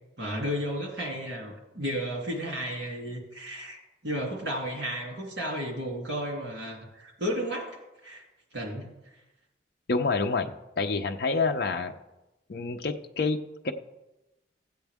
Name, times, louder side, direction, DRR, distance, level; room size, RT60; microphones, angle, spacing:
voice 1, 0.2-7.7 8.0-8.2 8.5-8.9, equal, 65° right, 0 dB, 2.6 m, -33 dB
voice 2, 9.9-10.5 10.8-12.0 12.5-13.7, left 4 dB, 55° left, 4 dB, 0.5 m, -28 dB
15.0 x 8.0 x 3.5 m, 1.0 s
head